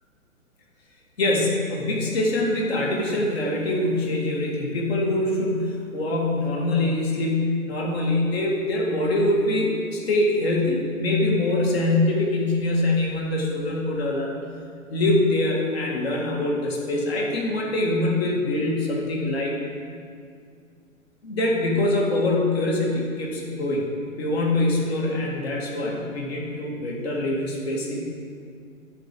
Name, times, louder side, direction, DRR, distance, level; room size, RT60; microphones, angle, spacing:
voice 1, 1.2-14.3 14.9-19.5 21.2-23.9 24.2-28.0, left 2 dB, 50° left, -1 dB, 2.1 m, -24 dB
9.9 x 4.7 x 7.7 m, 2.2 s
figure-of-eight pair, 115°, 40 cm